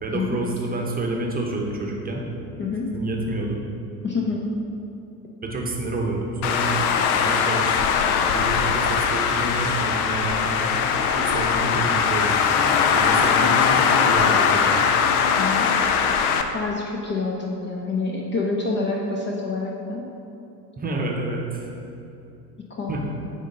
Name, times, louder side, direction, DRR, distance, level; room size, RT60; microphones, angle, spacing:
voice 1, 0.0-2.2 2.9-3.6 5.4-6.7 7.1-7.9 8.2-12.6 12.9-14.8 20.8-21.7 22.9-23.1, right 2 dB, 20° right, 0 dB, 0.9 m, -29 dB
voice 2, 2.6-2.9 4.0-4.4 15.4-15.7 16.5-20.1 22.7-22.9, left 3 dB, 25° left, -1 dB, 0.6 m, -27 dB
Traffic noise roadway noise, 6.4-16.4, left 6 dB, 60° left, 0.6 m, -20 dB
9.0 x 3.8 x 3.8 m, 2.8 s
figure-of-eight pair, 70°, 49 cm